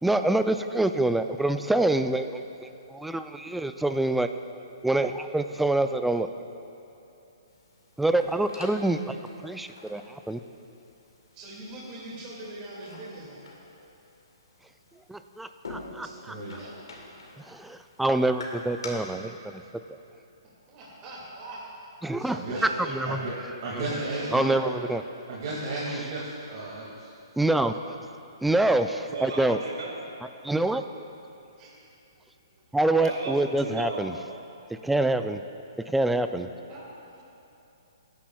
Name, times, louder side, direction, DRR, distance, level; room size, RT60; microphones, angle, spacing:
voice 1, 0.0-4.3 4.8-6.3 8.0-9.2 9.4-10.4 15.1-16.4 17.5-19.6 22.0-22.4 22.9-23.2 23.7-23.8 24.3-25.0 27.4-27.7 28.4-29.6 30.4-30.8 32.7-34.2 34.8-35.4 35.9-36.5, right 2 dB, 5° right, 9 dB, 0.3 m, -26 dB
sound 1, 7.5-18.9, left 3 dB, 85° left, 1.9 m, -47 dB
voice 2, 11.3-13.4 16.0-16.1 16.6-16.7 20.7-21.6 22.4-23.2 23.8-24.5 31.6-31.8 35.8-36.1 36.7-37.2, right 2 dB, 25° right, -6 dB, 2.2 m, -42 dB
voice 3, 16.0-16.6 22.2-22.6 23.1-23.3 23.6-24.7 25.3-27.1, right 2 dB, 50° right, -6 dB, 2.1 m, -34 dB
voice 4, 29.1-30.0 33.0-34.1, right 3 dB, 80° right, -1 dB, 2.4 m, -35 dB
17.0 x 9.9 x 2.3 m, 2.8 s
hypercardioid pair, 145°, 3 cm